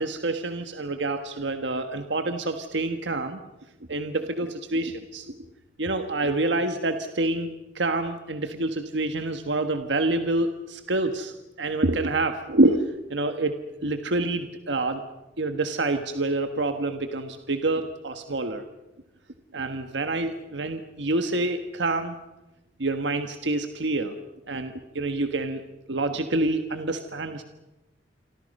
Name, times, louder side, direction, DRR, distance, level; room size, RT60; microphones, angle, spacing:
voice 1, 0.0-3.4 3.9-5.3 5.8-15.0 15.4-18.6 19.5-22.2 22.8-24.1 24.5-25.6 25.9-27.4, right 2 dB, 75° right, 7 dB, 1.4 m, -27 dB
29.0 x 24.0 x 5.4 m, 1.0 s
head